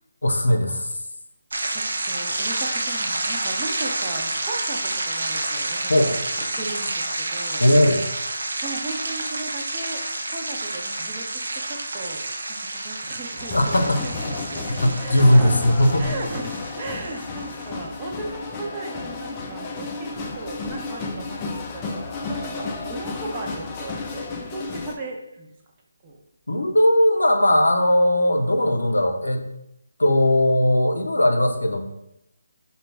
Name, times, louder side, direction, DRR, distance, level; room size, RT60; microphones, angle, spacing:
voice 1, 0.2-0.9 5.9-6.2 7.6-8.0 13.5-14.0 14.8-16.1 26.5-29.5 30.0-31.8, left 1 dB, 90° left, 4 dB, 0.5 m, -18 dB
sound 1, 1.5-17.7, right 2 dB, 70° right, 0.5 m, -29 dB
voice 2, 1.7-6.2 6.6-7.6 8.6-10.0 10.3-12.2 12.5-12.6 12.8-14.7 15.0-15.6 16.0-20.1 20.3-25.5 26.0-26.2, right 2 dB, 25° right, -1 dB, 0.6 m, -36 dB
sound 2, 13.4-24.9, left 3 dB, 20° left, 0.4 m, -33 dB
4.9 x 2.3 x 3.3 m, 0.84 s
figure-of-eight pair, 155°, 0 cm